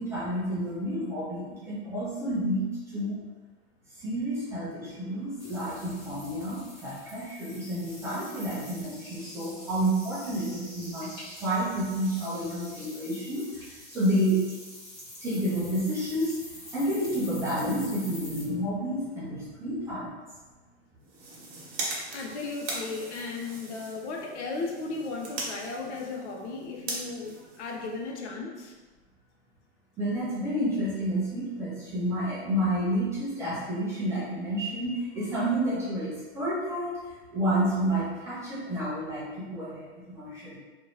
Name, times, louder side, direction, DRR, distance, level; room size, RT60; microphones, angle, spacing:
voice 1, 0.0-3.2 4.0-14.5 15.2-20.2 30.0-40.6, right 1 dB, 10° right, -10 dB, 0.3 m, -30 dB
sound 1, 5.4-18.4, left 1 dB, 30° left, 1.2 m, -46 dB
sound 2, 21.0-28.3, right 2 dB, 45° right, 1.0 m, -40 dB
voice 2, 22.1-28.7, left 3 dB, 80° left, 1 dB, 0.8 m, -36 dB
2.9 x 2.6 x 2.8 m, 1.3 s
supercardioid pair, 150°, 34 cm